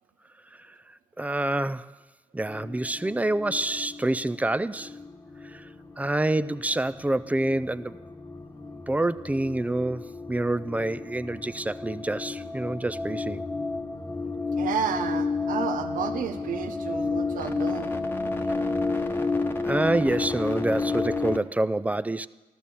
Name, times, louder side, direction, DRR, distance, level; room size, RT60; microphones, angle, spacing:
voice 1, 1.2-1.9 2.3-4.9 5.4-5.7 6.0-8.0 8.9-13.5 19.7-22.3, right 2 dB, 10° right, 0.4 m, -27 dB
sound 1, 2.5-21.4, left 3 dB, 15° left, 1.1 m, -32 dB
voice 2, 14.6-17.9, right 7 dB, 70° right, 1.0 m, -31 dB
14.5 x 12.5 x 6.9 m
cardioid pair, 80°, 15 cm